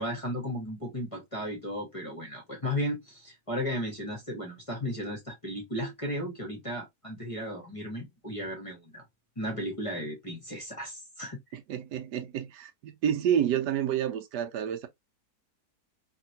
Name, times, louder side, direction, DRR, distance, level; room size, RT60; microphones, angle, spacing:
voice 1, 0.0-9.0 9.4-11.4, equal, 25° left, 0.9 m, -35 dB
voice 2, 11.5-14.9, right 9 dB, 85° right, 1.2 m, -29 dB
3.1 x 2.8 x 2.7 m
omnidirectional pair, 1.7 m